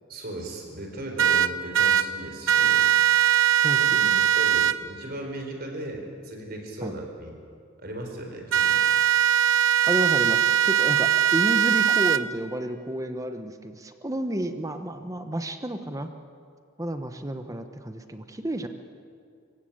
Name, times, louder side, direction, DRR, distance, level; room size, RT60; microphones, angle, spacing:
voice 1, 0.1-2.9 4.3-7.3 7.8-8.8, right 1 dB, 45° right, 3 dB, 4.3 m, -37 dB
sound 1, 1.2-2.0 2.5-4.7 8.5-12.2, right 10 dB, 65° right, 0.8 m, -20 dB
voice 2, 3.6-4.3 6.8-6.9 9.9-16.1 16.8-18.7, right 1 dB, 15° right, 7 dB, 1.0 m, -31 dB
25.0 x 15.5 x 8.8 m, 2.3 s
head